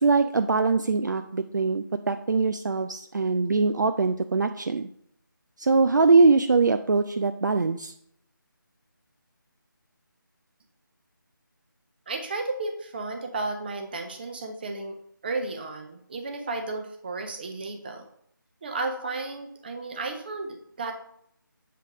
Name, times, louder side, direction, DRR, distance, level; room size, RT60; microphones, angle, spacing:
voice 1, 0.0-4.9 5.6-7.9, right 4 dB, 60° right, 8 dB, 0.4 m, -22 dB
voice 2, 12.1-15.0 15.2-18.1 18.6-20.9, right 3 dB, 25° right, 4 dB, 0.8 m, -33 dB
7.5 x 3.5 x 4.7 m, 0.70 s
figure-of-eight pair, 165°, 11 cm